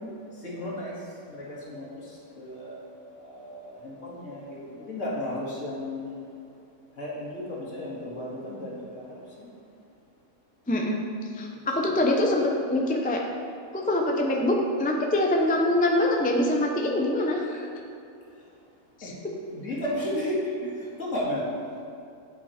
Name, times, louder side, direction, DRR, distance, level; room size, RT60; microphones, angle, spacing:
voice 1, 0.3-6.3 7.0-9.5 11.7-12.0 19.0-19.1 19.5-21.4, left 1 dB, 55° left, -6 dB, 2.4 m, -34 dB
voice 2, 10.7-11.0 11.3-13.2 13.7-17.7 19.0-19.1, left 1 dB, 10° left, 0 dB, 0.5 m, -24 dB
8.7 x 8.4 x 4.3 m, 2.6 s
omnidirectional pair, 1.5 m